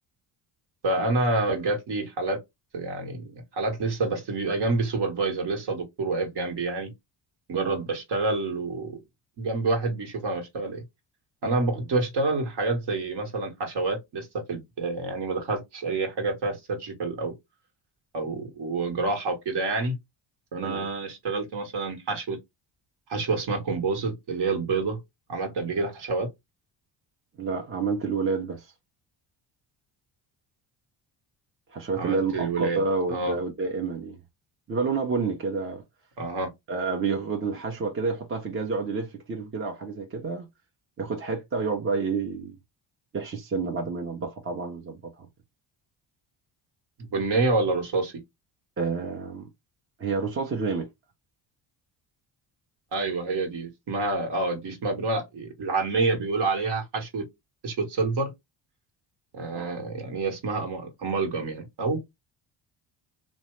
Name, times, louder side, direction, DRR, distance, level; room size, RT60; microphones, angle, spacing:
voice 1, 0.8-2.4 2.7-6.9 7.5-9.0 9.4-10.8 11.4-17.3 18.1-19.9 20.5-22.4 23.1-25.0 25.3-26.3 32.0-32.8 33.1-33.4 36.2-36.5 47.0-48.1 52.9-57.2 57.6-58.3 59.3-62.1, right 3 dB, 55° right, 1.3 m, -28 dB
voice 2, 27.4-28.7 31.7-34.2 34.7-35.8 36.7-40.5 41.0-42.6 43.1-45.3 48.8-49.5 50.0-50.9 59.5-59.8, right 4 dB, 25° right, 0.7 m, -29 dB
2.7 x 2.1 x 3.1 m
supercardioid pair, 70°, 48 cm